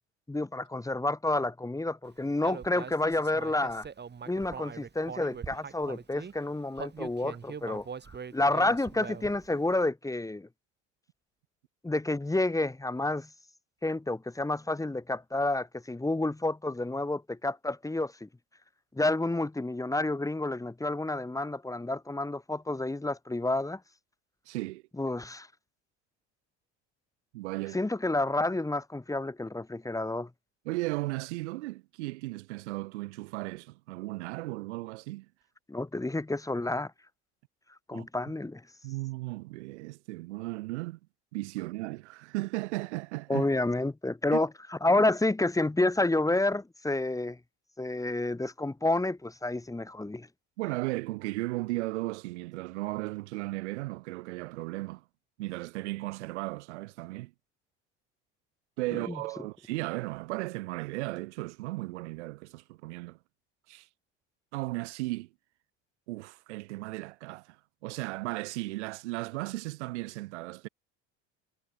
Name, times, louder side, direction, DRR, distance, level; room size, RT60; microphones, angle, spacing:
voice 1, 0.3-3.9 4.3-7.9 8.3-10.5 11.8-13.3 13.8-18.3 18.9-23.8 25.0-25.5 27.7-30.3 35.7-36.9 37.9-38.6 43.3-44.5 44.8-47.4 47.8-50.3 59.1-59.2, left 2 dB, 10° left, 2.2 m, -29 dB
Human voice, 2.4-6.3 6.7-9.5, right 6 dB, 30° right, 6.2 m, -42 dB
voice 2, 24.5-24.8 27.3-27.8 30.7-35.3 37.9-38.1 38.8-41.0 41.3-43.5 44.3-44.4 50.6-55.0 55.4-57.3 58.8-63.2 63.7-63.9 64.5-65.3 66.1-67.6 67.8-70.7, right 21 dB, 80° right, 2.0 m, -35 dB
hypercardioid pair, 85°, 34 cm